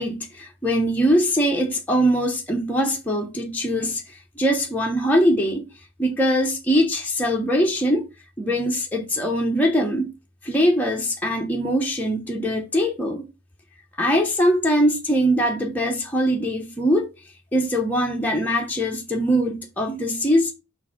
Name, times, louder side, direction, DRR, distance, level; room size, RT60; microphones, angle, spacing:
voice 1, 0.0-5.6 6.0-8.1 8.4-10.1 10.4-13.3 14.0-17.1 17.5-20.5, equal, 10° left, 0.8 m, -22 dB
6.7 x 2.6 x 5.6 m
head